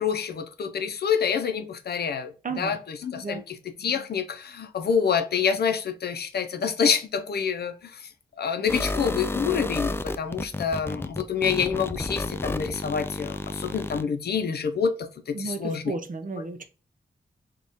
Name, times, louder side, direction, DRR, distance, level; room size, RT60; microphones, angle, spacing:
voice 1, 0.0-8.0 8.4-15.9, left 6 dB, 70° left, 0.6 m, -27 dB
voice 2, 2.4-2.8 3.2-3.4 15.3-16.6, right 4 dB, 50° right, 0.7 m, -33 dB
sound 1, 8.7-14.0, left 2 dB, 15° left, 0.4 m, -31 dB
4.1 x 2.4 x 3.5 m
cardioid pair, 50°, 17 cm